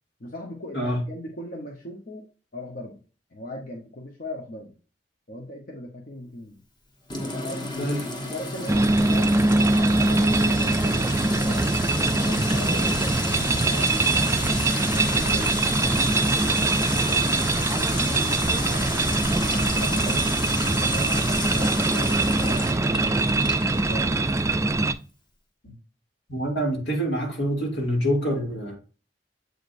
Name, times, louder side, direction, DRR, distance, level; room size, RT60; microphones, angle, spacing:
voice 1, 0.2-2.3 2.5-3.0 3.3-4.7 5.3-6.6 7.2-7.9 8.2-11.7 12.1-17.3 17.7-21.2 21.5-22.7 23.7-24.2, left 1 dB, 50° left, 1.0 m, -39 dB
Sink (filling or washing) / Trickle dribble / Fill (with liquid), 7.1-24.5, left 2 dB, 25° left, 1.1 m, -32 dB
sound 1, 8.7-24.9, right 2 dB, 15° right, 0.4 m, -23 dB
voice 2, 26.3-28.7, equal, 70° left, 2.4 m, -26 dB
7.8 x 4.9 x 2.6 m
head